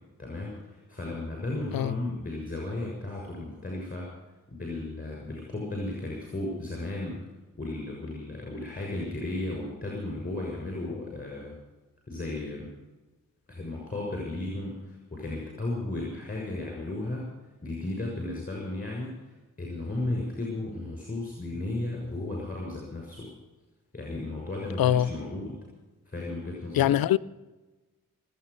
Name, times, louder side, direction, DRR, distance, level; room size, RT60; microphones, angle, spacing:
voice 1, 0.2-4.1 4.5-7.2 7.6-11.6 12.1-12.7 13.5-17.3 17.6-23.3 23.9-25.6 26.0-27.0, left 2 dB, 25° left, 6.7 m, -34 dB
voice 2, 24.8-25.1 26.7-27.2, left 12 dB, 85° left, 0.5 m, -22 dB
20.5 x 9.3 x 6.9 m
cardioid pair, 45°, 34 cm